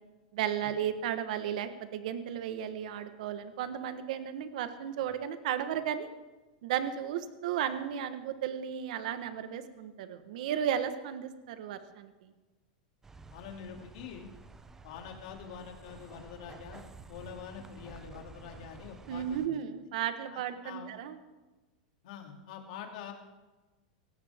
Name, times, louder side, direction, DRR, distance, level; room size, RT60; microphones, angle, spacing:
voice 1, 0.3-6.1 6.6-12.1 19.1-21.2, right 9 dB, 65° right, 10 dB, 1.3 m, -34 dB
sound 1, 13.0-19.5, right 3 dB, 10° right, 0.7 m, -51 dB
voice 2, 13.3-14.3 14.8-16.8 17.1-19.6 20.3-20.9 22.0-23.1, left 7 dB, 60° left, 2 dB, 2.8 m, -45 dB
17.5 x 16.5 x 3.6 m, 1.2 s
supercardioid pair, 150°, 4 cm